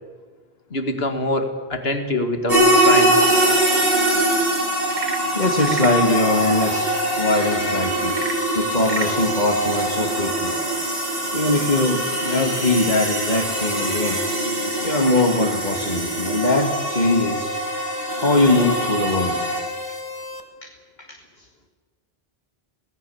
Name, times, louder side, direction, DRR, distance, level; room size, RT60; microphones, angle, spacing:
voice 1, 0.7-3.1, left 1 dB, 70° left, 6 dB, 2.4 m, -24 dB
sound 1, 2.5-19.6, right 1 dB, 65° right, 7.3 m, -23 dB
Frog / Percussion / Wood, 4.8-6.1 8.0-9.2, right 3 dB, 45° right, 2.0 m, -31 dB
voice 2, 5.4-8.2 8.6-10.5 11.3-14.2 14.8-17.5 18.2-19.4 20.6-20.7, left 2 dB, 45° left, 1 dB, 2.2 m, -21 dB
sound 2, 6.1-20.4, left 2 dB, 20° left, 2.0 m, -34 dB
26.5 x 18.0 x 7.1 m, 1.5 s
omnidirectional pair, 1.1 m